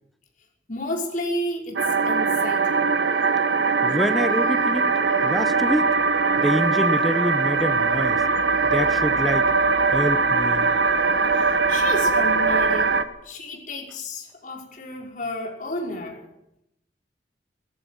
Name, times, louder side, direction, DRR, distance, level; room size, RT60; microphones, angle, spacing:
voice 1, 0.7-2.9 11.3-13.0 13.2-16.3, left 1 dB, 45° left, 0 dB, 5.5 m, -32 dB
sound 1, 1.8-13.0, right 4 dB, 85° right, 1.4 m, -21 dB
voice 2, 3.8-4.9 5.2-5.9 6.4-8.2 8.6-9.5 9.9-10.7, equal, ahead, 10 dB, 0.9 m, -26 dB
19.5 x 14.5 x 9.4 m, 0.81 s
head